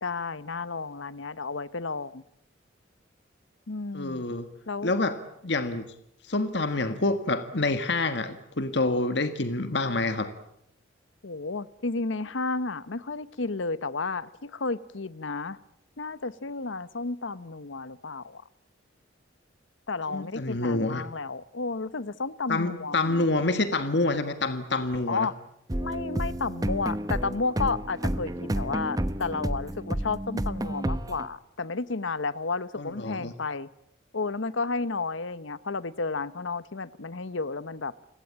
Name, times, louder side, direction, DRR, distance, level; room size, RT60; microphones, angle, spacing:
voice 1, 0.0-2.2 3.7-4.3 4.7-4.9 11.2-15.6 16.0-18.4 19.9-23.2 25.1-25.3 25.8-33.7 34.1-37.9, left 3 dB, 85° left, 17 dB, 1.0 m, -32 dB
voice 2, 3.9-4.5 4.8-5.2 5.4-5.8 6.3-10.3 20.1-21.0 22.5-25.3 32.8-33.3, left 2 dB, 60° left, 10 dB, 1.6 m, -27 dB
sound 1, 25.7-31.3, right 1 dB, 20° right, 0.9 m, -30 dB
29.5 x 18.0 x 8.7 m, 0.77 s
head